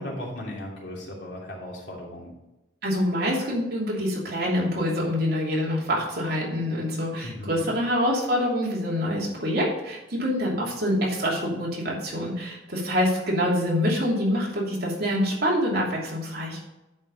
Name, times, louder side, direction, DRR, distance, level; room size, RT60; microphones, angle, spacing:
voice 1, 0.0-2.3 7.2-7.7, left 1 dB, 70° left, -3 dB, 3.0 m, -36 dB
voice 2, 2.8-16.6, equal, 60° right, -4 dB, 3.0 m, -26 dB
10.5 x 5.1 x 5.5 m, 0.96 s
head